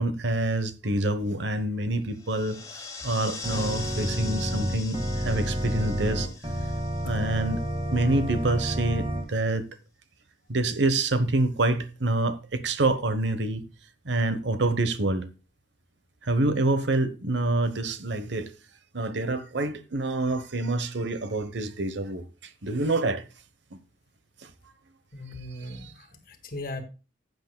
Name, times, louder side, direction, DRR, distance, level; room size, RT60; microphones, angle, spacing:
voice 1, 0.0-5.0 5.2-6.3 7.0-7.6 7.9-9.7 10.5-13.6 14.0-15.3 16.2-18.5 18.9-23.2 23.7-23.8 24.4-24.5 25.6-25.9, right 2 dB, 70° right, 1.0 m, -27 dB
sound 1, 2.1-8.0, left 4 dB, 15° left, 1.4 m, -41 dB
Organ, 3.4-9.2, equal, 25° right, 1.7 m, -30 dB
voice 2, 25.1-26.8, left 1 dB, 50° left, 1.7 m, -38 dB
15.5 x 8.0 x 2.2 m
head